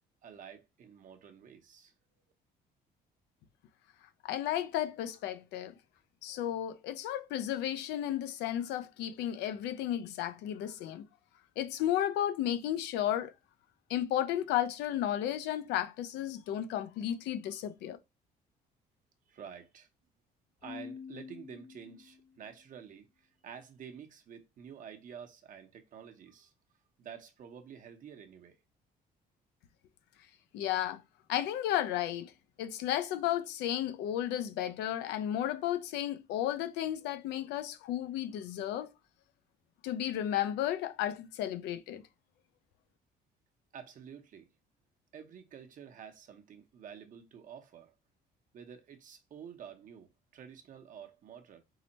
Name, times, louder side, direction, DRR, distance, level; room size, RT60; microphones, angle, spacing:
voice 1, 0.2-1.9 19.3-19.9 20.6-26.5 27.0-28.6 43.7-44.5 45.1-47.9 48.5-51.6, right 7 dB, 50° right, 0.9 m, -50 dB
voice 2, 4.2-5.8 6.2-11.0 11.6-13.3 13.9-18.0 30.5-31.0 31.3-32.3 32.6-38.9 39.8-42.0, left 11 dB, 85° left, 0.6 m, -33 dB
Keyboard (musical), 20.6-22.4, left 6 dB, 35° left, 0.5 m, -47 dB
4.8 x 2.1 x 4.0 m
cardioid pair, 110°, 17 cm